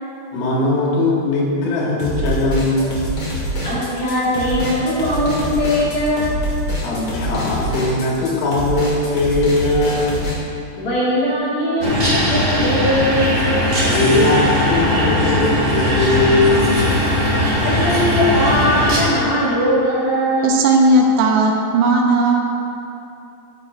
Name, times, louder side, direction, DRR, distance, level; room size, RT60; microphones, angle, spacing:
voice 1, 0.3-3.1 6.8-10.3 13.8-16.9, left 2 dB, 85° left, -3 dB, 3.9 m, -19 dB
sound 1, 2.0-10.4, equal, 65° left, 1.2 m, -25 dB
voice 2, 3.6-6.5 10.8-13.5 17.6-20.5, equal, 50° left, -10 dB, 2.6 m, -20 dB
sound 2, 11.8-19.0, left 1 dB, 50° right, 1.0 m, -18 dB
voice 3, 20.4-22.4, right 2 dB, 85° right, 1 dB, 3.3 m, -15 dB
13.5 x 8.1 x 2.6 m, 2.7 s
omnidirectional pair, 5.4 m